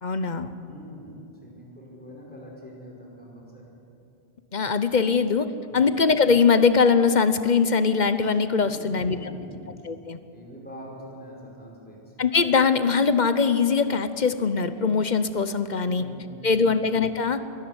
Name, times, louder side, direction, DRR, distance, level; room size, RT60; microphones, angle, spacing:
voice 1, 0.0-0.5 4.5-9.3 9.8-10.2 12.2-16.0 16.4-17.4, left 5 dB, 45° left, 11 dB, 0.9 m, -22 dB
voice 2, 0.7-3.7 5.7-6.0 8.6-9.7 10.3-12.1 15.9-16.9, equal, 10° left, -3 dB, 5.1 m, -44 dB
23.0 x 13.5 x 9.7 m, 2.8 s
omnidirectional pair, 1.1 m